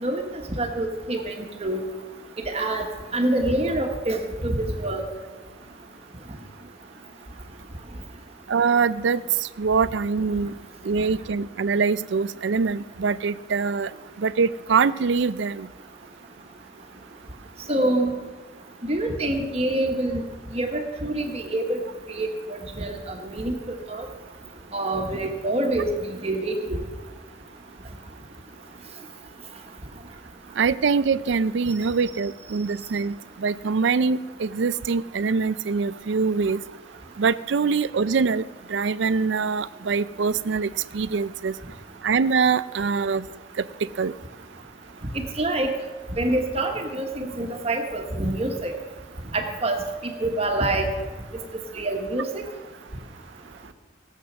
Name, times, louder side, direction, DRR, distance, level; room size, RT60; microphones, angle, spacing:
voice 1, 0.6-1.3 1.6-1.8 2.4-2.9 3.1-5.0 17.7-18.1 18.8-20.2 20.5-21.8 22.1-22.3 22.7-23.0 23.3-24.0 24.7-25.9 26.2-26.6 45.4-45.7 46.2-48.7 49.3-49.8 50.2-50.9 51.7-52.3, right 1 dB, 30° right, 4 dB, 1.2 m, -25 dB
voice 2, 8.5-10.6 10.8-13.9 14.2-15.7 30.6-36.6 37.2-38.4 38.7-41.6 42.0-43.3 43.6-43.7 44.0-44.1, right 5 dB, 75° right, 17 dB, 0.4 m, -24 dB
17.5 x 7.8 x 6.1 m, 1.4 s
head